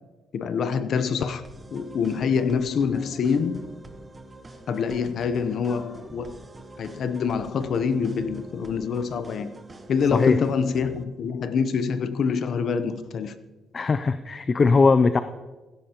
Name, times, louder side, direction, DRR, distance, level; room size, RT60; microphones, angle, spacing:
voice 1, 0.3-1.4 1.7-3.6 4.7-6.4 6.8-9.5 9.9-13.4, left 6 dB, 65° left, 0.8 m, -25 dB
sound 1, 1.4-11.0, right 2 dB, 25° right, 1.2 m, -45 dB
voice 2, 13.7-15.2, left 4 dB, 35° left, 0.4 m, -20 dB
16.0 x 13.0 x 2.9 m
cardioid pair, 90°, 0 cm